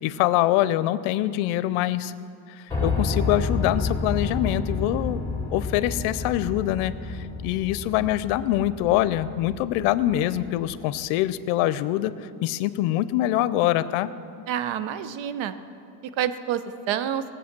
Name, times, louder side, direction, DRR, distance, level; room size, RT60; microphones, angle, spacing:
voice 1, 0.0-2.1 2.5-5.3 5.5-14.1, left 14 dB, 85° left, 15 dB, 0.7 m, -24 dB
Piano, 2.7-10.7, left 3 dB, 5° left, 2.6 m, -30 dB
voice 2, 14.5-15.5 16.2-17.2, right 10 dB, 65° right, 12 dB, 0.9 m, -28 dB
18.5 x 7.9 x 6.0 m, 2.5 s
cardioid pair, 110°, 49 cm